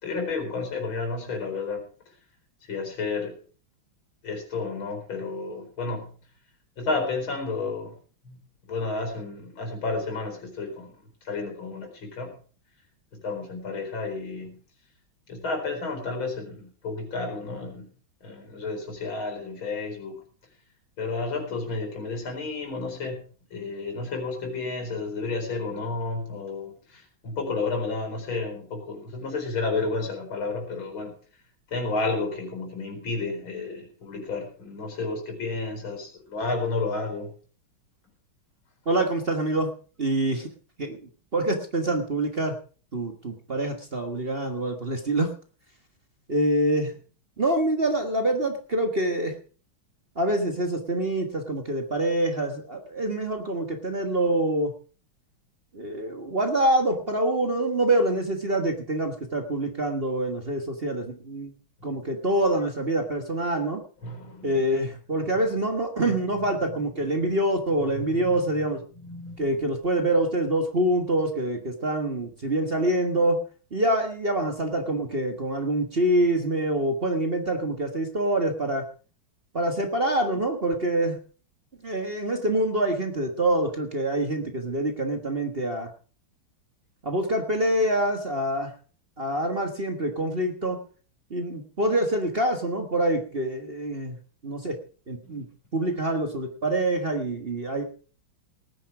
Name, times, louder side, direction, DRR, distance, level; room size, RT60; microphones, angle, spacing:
voice 1, 0.0-1.8 2.7-3.4 4.2-6.1 6.8-8.0 8.3-8.4 8.6-11.0 11.3-12.3 13.1-14.6 15.3-17.9 18.2-20.2 21.0-23.2 23.5-31.1 31.7-37.3 64.0-64.5 66.0-66.1 66.6-66.7 67.9-68.3 69.0-69.5 95.2-95.4, left 3 dB, 75° left, 3 dB, 5.3 m, -31 dB
voice 2, 38.8-39.7 40.0-40.5 40.8-42.6 42.9-45.3 46.3-46.9 47.4-49.3 50.1-54.7 55.7-61.5 61.8-63.8 64.4-68.8 69.4-73.4 73.7-78.9 79.5-81.2 81.8-85.9 87.0-88.7 89.2-90.8 91.3-94.2 94.4-94.8 95.1-95.5 95.7-97.8, right 1 dB, 30° right, 5 dB, 1.5 m, -26 dB
18.5 x 10.0 x 4.8 m, 0.39 s
omnidirectional pair, 2.2 m